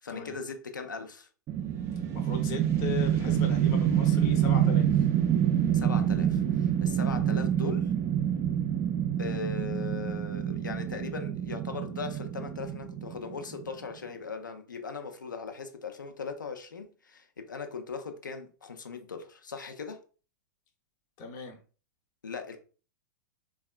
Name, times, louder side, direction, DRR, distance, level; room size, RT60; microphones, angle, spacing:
voice 1, 0.0-1.3 5.7-7.9 9.2-20.0 22.2-22.6, left 5 dB, 85° left, 0.5 m, -39 dB
sound 1, 1.5-13.7, right 9 dB, 30° right, 0.4 m, -27 dB
voice 2, 2.1-4.9 21.2-21.6, left 5 dB, 40° left, 0.7 m, -38 dB
3.4 x 2.3 x 2.3 m
hypercardioid pair, 105°, 10 cm